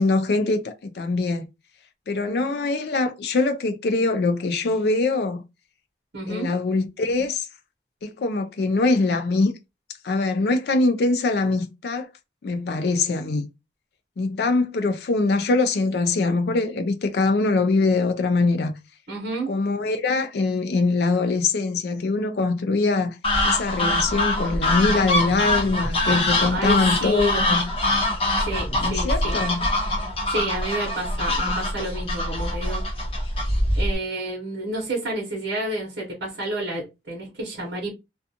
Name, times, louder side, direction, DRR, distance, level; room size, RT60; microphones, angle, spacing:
voice 1, 0.0-1.5 2.1-5.4 6.3-7.5 8.0-9.5 10.0-12.1 12.4-13.5 14.2-18.7 19.5-23.2 23.4-27.7 28.8-29.7, left 3 dB, 60° left, 0.4 m, -23 dB
voice 2, 6.1-6.5 19.1-19.5 26.5-27.4 28.5-29.4 30.3-32.8 33.7-37.9, right 2 dB, 65° right, 0.9 m, -30 dB
sound 1, 23.2-34.0, left 1 dB, 30° left, 0.8 m, -24 dB
2.4 x 2.3 x 2.7 m
head